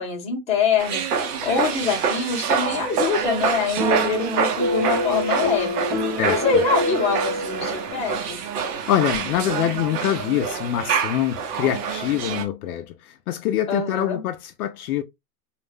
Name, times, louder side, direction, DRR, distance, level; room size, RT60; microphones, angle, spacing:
voice 1, 0.0-5.8 6.2-8.4 13.7-14.2, left 5 dB, 15° left, 0.7 m, -25 dB
sound 1, 0.8-12.4, right 6 dB, 70° right, 0.8 m, -26 dB
sound 2, 3.8-8.2, left 1 dB, 20° right, 0.4 m, -27 dB
voice 2, 8.9-15.0, left 11 dB, 65° left, 0.5 m, -25 dB
2.4 x 2.1 x 3.2 m
supercardioid pair, 155°, 49 cm